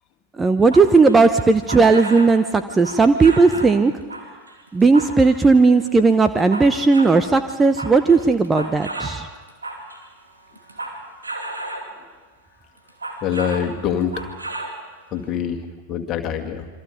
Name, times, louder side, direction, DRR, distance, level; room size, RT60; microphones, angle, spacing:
voice 1, 0.4-3.9 4.7-9.3, right 4 dB, 15° right, 9 dB, 0.8 m, -16 dB
sound 1, 0.6-2.4 2.8-3.8 4.1-5.5 6.0-7.2 7.5-10.1 10.5-12.0 12.8-13.7 14.0-14.8 15.2-15.3, right 2 dB, 80° right, 2.8 m, -33 dB
voice 2, 13.2-14.3 15.1-16.7, left 8 dB, 35° left, 5 dB, 2.1 m, -25 dB
27.5 x 24.5 x 5.3 m, 1.3 s
figure-of-eight pair, 90°, 0 cm